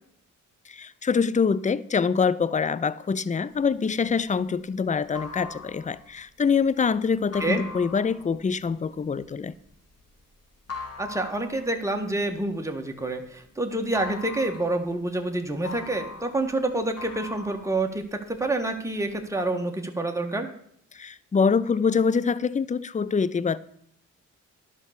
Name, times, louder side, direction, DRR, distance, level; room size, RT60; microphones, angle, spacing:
voice 1, 0.7-9.5 20.9-23.6, left 5 dB, 20° left, 0.5 m, -25 dB
sound 1, 3.6-13.4 13.7-18.5 18.9-19.5, left 4 dB, 45° left, 2.7 m, -41 dB
voice 2, 11.0-20.5, right 2 dB, 10° right, 1.7 m, -28 dB
11.0 x 5.7 x 6.6 m
hypercardioid pair, 45°, 36 cm